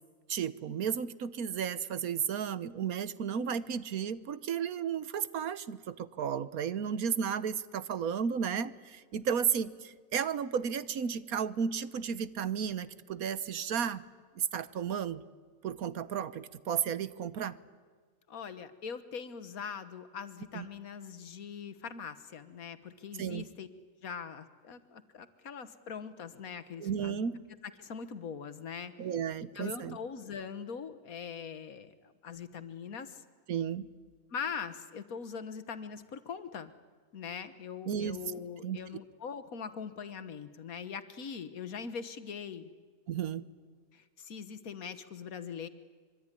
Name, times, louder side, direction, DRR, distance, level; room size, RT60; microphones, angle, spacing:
voice 1, 0.3-14.0 14.4-15.2 15.6-17.6 20.5-20.7 23.2-23.4 26.8-27.4 29.0-30.0 33.5-33.9 37.9-38.2 38.6-38.8 43.1-43.4, right 7 dB, 90° right, 15 dB, 1.5 m, -33 dB
voice 2, 18.3-23.7 24.0-27.2 27.8-28.9 29.5-31.9 32.2-33.2 34.3-36.7 37.1-42.7 43.9-45.7, left 6 dB, 80° left, 12 dB, 1.8 m, -42 dB
25.0 x 24.0 x 9.9 m, 1.5 s
omnidirectional pair, 1.5 m